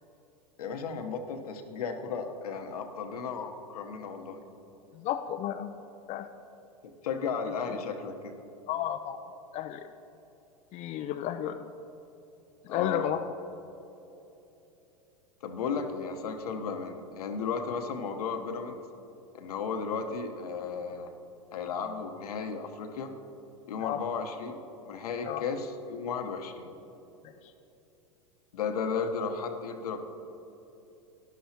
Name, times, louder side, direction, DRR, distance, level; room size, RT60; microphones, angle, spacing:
voice 1, 0.6-4.4 7.0-8.3 12.7-13.2 15.4-18.8 19.3-21.1 21.5-23.1 23.7-26.7 28.5-30.0, left 5 dB, 75° left, 6 dB, 1.0 m, -34 dB
voice 2, 4.9-5.7 6.1-6.3 8.7-9.2 9.5-9.9 10.7-11.7 12.7-13.2 23.8-24.0 25.2-25.4, left 11 dB, 35° left, 7 dB, 0.5 m, -32 dB
13.5 x 11.0 x 2.9 m, 3.0 s
hypercardioid pair, 95°, 19 cm